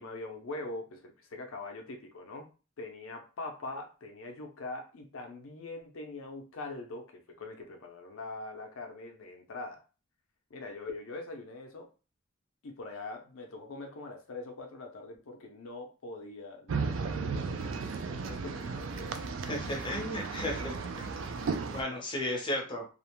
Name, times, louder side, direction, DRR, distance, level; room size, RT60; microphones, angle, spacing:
voice 1, 0.0-2.5 2.8-9.8 10.5-11.9 12.6-19.3, left 2 dB, 75° left, 4 dB, 0.5 m, -43 dB
sound 1, 16.7-21.8, right 4 dB, 65° right, 0.3 m, -35 dB
voice 2, 19.5-21.1 21.6-22.9, left 1 dB, 25° left, 0 dB, 0.7 m, -34 dB
2.4 x 2.1 x 2.9 m, 0.34 s
head